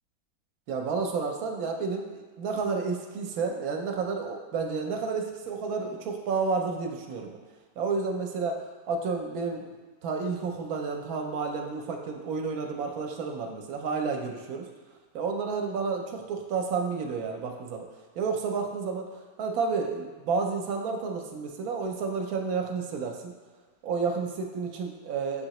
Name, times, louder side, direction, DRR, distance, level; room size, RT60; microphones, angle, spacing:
voice 1, 0.7-7.4 7.8-8.6 8.9-9.7 10.0-14.7 15.1-17.8 18.2-19.1 19.4-23.3 23.8-25.5, right 4 dB, 75° right, 2 dB, 1.0 m, -31 dB
6.3 x 2.8 x 2.9 m, 1.4 s
omnidirectional pair, 1.6 m